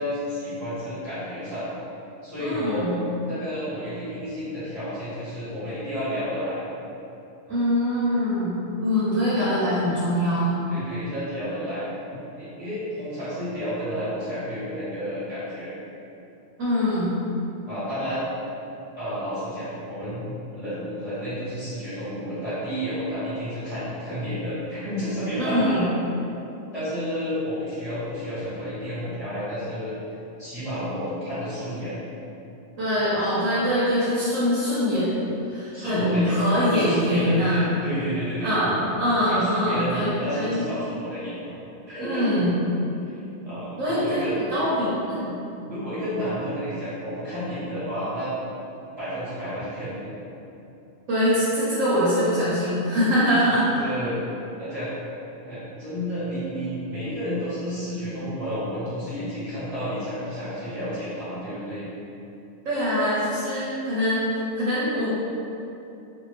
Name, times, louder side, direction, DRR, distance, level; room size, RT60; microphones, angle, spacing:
voice 1, 0.0-1.7 2.2-2.9 3.2-6.6 9.3-9.4 10.7-11.8 12.4-15.7 17.7-18.2 19.0-25.8 26.7-30.0 30.4-31.9 35.7-36.4 36.7-38.6 39.3-41.5 41.9-42.4 43.1-43.2 43.5-44.4 45.6-48.3 49.0-50.1 53.8-54.2 54.6-54.9 55.4-61.8, equal, 30° right, -17 dB, 1.4 m, -31 dB
voice 2, 2.4-3.0 7.5-10.6 16.6-17.1 25.4-25.8 32.8-35.1 35.5-37.7 38.4-40.6 42.0-42.5 43.8-45.3 51.1-53.7 62.6-64.2 64.6-65.1, equal, 80° right, -11 dB, 1.3 m, -23 dB
2.8 x 2.5 x 3.2 m, 2.8 s
omnidirectional pair, 1.3 m